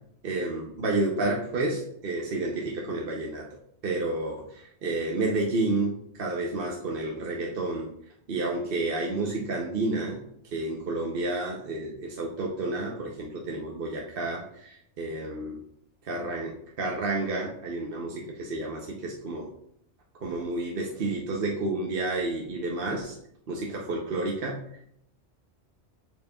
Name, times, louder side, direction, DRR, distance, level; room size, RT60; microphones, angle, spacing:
voice 1, 0.2-3.5 3.8-7.9 8.3-10.2 10.5-15.6 16.0-19.5 20.2-23.1 23.5-24.6, right 2 dB, 55° right, -1 dB, 1.0 m, -30 dB
6.8 x 6.2 x 2.3 m, 0.72 s
omnidirectional pair, 1.2 m